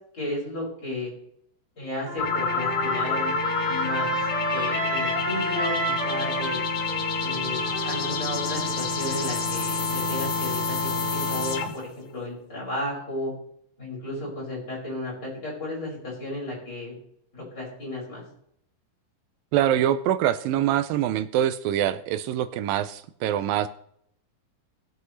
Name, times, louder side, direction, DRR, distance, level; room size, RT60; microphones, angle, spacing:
voice 1, 0.1-1.1 1.8-3.3 3.7-4.1 4.5-6.6 7.2-13.3 13.8-16.9 17.3-18.2, left 1 dB, 30° left, -5 dB, 6.0 m, -34 dB
Trumpet, 2.0-8.7, right 2 dB, 35° right, 0.6 m, -31 dB
sound 1, 2.2-11.9, left 4 dB, 65° left, 2.3 m, -28 dB
voice 2, 19.5-23.7, right 11 dB, 85° right, 13 dB, 2.3 m, -24 dB
19.0 x 7.9 x 3.2 m, 0.69 s
omnidirectional pair, 4.1 m